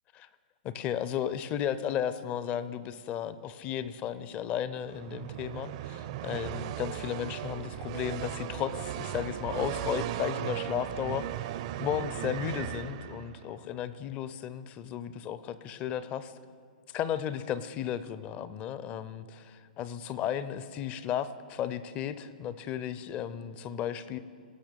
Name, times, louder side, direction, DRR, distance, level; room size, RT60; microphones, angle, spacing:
voice 1, 0.6-16.3 16.9-24.2, left 9 dB, 30° left, 14 dB, 0.5 m, -34 dB
sound 1, 4.8-13.5, right 12 dB, 45° right, 0.5 m, -37 dB
18.0 x 6.1 x 5.2 m, 2.1 s
hypercardioid pair, 135°, 5 cm